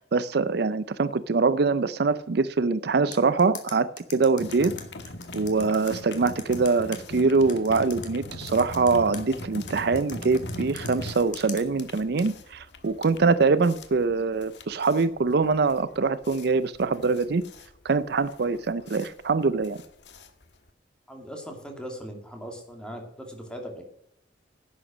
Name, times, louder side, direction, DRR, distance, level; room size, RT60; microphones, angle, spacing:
voice 1, 0.0-4.7 5.3-17.4 17.8-19.8, right 4 dB, 60° right, 0.5 m, -24 dB
sound 1, 3.1-7.0 7.5-9.2 9.7-11.6, left 8 dB, 45° left, 2.0 m, -40 dB
sound 2, 4.4-20.7, left 1 dB, 65° left, 1.4 m, -40 dB
voice 2, 21.1-23.9, equal, 5° left, 2.4 m, -39 dB
11.0 x 8.1 x 6.2 m
head